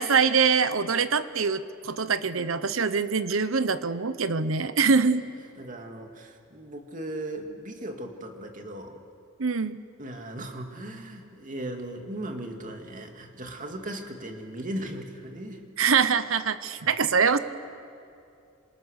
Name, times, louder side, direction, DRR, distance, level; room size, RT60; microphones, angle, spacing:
voice 1, 0.0-5.2 9.4-9.8 15.8-17.4, right 5 dB, 80° right, 13 dB, 1.0 m, -24 dB
voice 2, 5.6-9.0 10.0-15.6 16.8-16.9, right 1 dB, 40° right, 3 dB, 2.4 m, -37 dB
28.0 x 26.5 x 6.6 m, 2.6 s
head